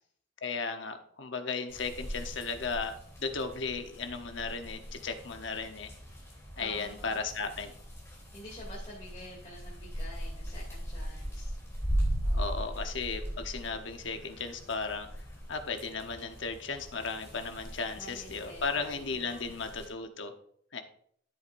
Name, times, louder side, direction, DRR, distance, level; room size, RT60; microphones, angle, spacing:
voice 1, 0.4-5.9 6.6-7.7 12.3-15.1 15.5-20.3 20.7-20.8, left 4 dB, 65° left, 6 dB, 1.0 m, -35 dB
sound 1, 1.7-19.9, equal, 15° left, 3.2 m, -39 dB
voice 2, 6.5-7.2 8.1-11.6 12.2-12.7 17.9-19.5, left 1 dB, 30° left, -6 dB, 2.7 m, -49 dB
13.0 x 7.7 x 2.6 m, 0.65 s
head